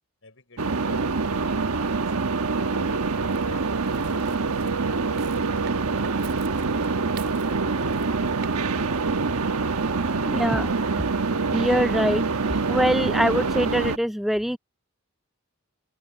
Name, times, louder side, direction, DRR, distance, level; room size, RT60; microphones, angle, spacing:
voice 1, 0.2-2.1 2.6-5.6, left 2 dB, 65° left, 6.3 m, -50 dB
sound 1, 0.6-14.0, right 4 dB, 90° right, 1.2 m, -25 dB
sound 2, 3.3-8.5 8.8-9.0, right 5 dB, 50° right, 4.6 m, -46 dB
voice 2, 10.2-10.7 11.5-12.2 12.7-14.6, equal, ahead, 0.5 m, -23 dB
open air
head